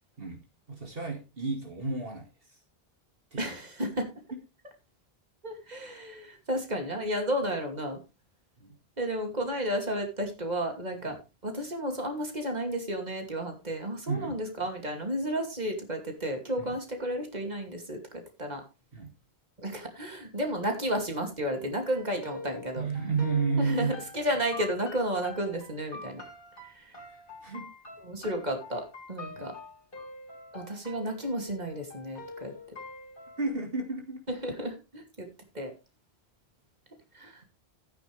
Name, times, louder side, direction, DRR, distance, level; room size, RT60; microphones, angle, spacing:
voice 1, 0.7-2.6 3.3-3.5 8.6-8.7 11.1-11.2 14.1-14.4 16.6-16.8 18.9-19.1 22.8-23.9 27.1-27.7 29.3-29.4 33.4-34.2, right 4 dB, 65° right, 2 dB, 2.3 m, -32 dB
voice 2, 3.4-4.0 5.4-8.0 9.0-11.2 11.4-18.6 19.6-22.9 23.6-26.2 26.7-26.9 28.0-28.8 29.1-29.5 30.5-32.5 34.3-35.3 35.5-35.7 37.1-37.4, equal, 45° right, 4 dB, 2.8 m, -32 dB
sound 1, 21.9-33.5, left 2 dB, 60° left, 3.6 m, -45 dB
13.5 x 9.6 x 3.4 m, 0.28 s
omnidirectional pair, 1.0 m